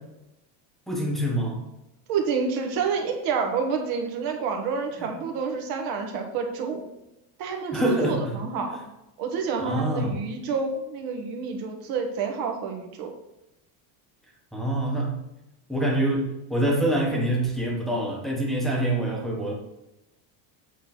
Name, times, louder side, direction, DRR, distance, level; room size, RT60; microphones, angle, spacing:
voice 1, 0.9-1.6 5.0-5.1 7.7-8.4 8.7-8.8 9.6-10.2 14.5-15.2 15.7-19.5, right 1 dB, ahead, -1 dB, 1.2 m, -25 dB
voice 2, 2.1-6.9 7.4-8.8 9.2-13.1, right 5 dB, 45° right, 3 dB, 1.4 m, -28 dB
8.2 x 3.9 x 5.9 m, 0.92 s
cardioid pair, 175°, 48 cm